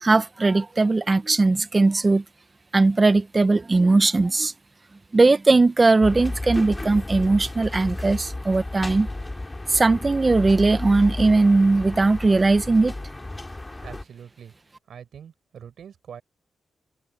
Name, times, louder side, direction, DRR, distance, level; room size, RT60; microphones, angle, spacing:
voice 1, 0.0-2.2 2.7-4.5 5.1-9.1 9.7-12.9, right 3 dB, 30° right, 1.0 m, -19 dB
sound 1, 6.0-14.0, left 2 dB, 20° left, 2.7 m, -33 dB
voice 2, 13.8-14.5 14.9-16.2, right 8 dB, 75° right, 7.7 m, -43 dB
cardioid pair, 85°, 0 cm